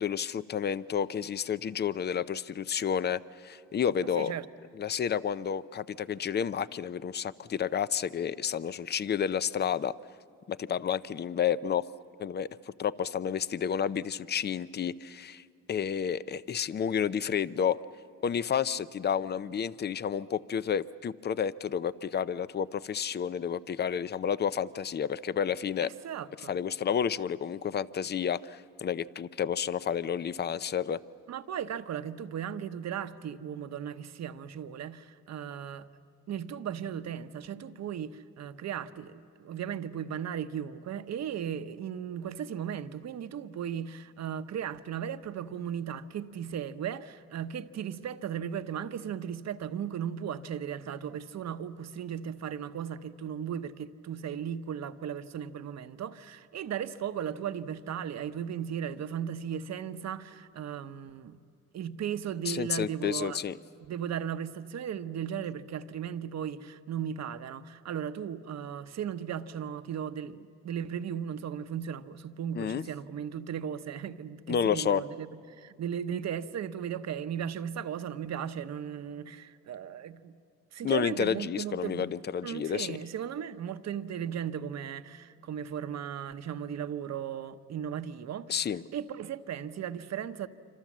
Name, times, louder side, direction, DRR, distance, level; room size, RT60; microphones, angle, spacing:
voice 1, 0.0-4.3 4.8-10.0 10.5-11.9 12.2-12.5 12.8-15.4 15.7-17.8 18.2-25.9 26.5-31.0 62.5-63.6 72.5-72.8 74.5-75.0 80.8-83.0 88.5-88.8, left 8 dB, 35° left, 0.6 m, -30 dB
voice 2, 25.8-26.5 31.3-35.9 36.3-61.4 61.7-63.4 63.8-80.4 80.7-82.1 82.4-90.5, right 8 dB, 60° right, 1.0 m, -36 dB
26.5 x 25.5 x 7.4 m
cardioid pair, 90°, 30 cm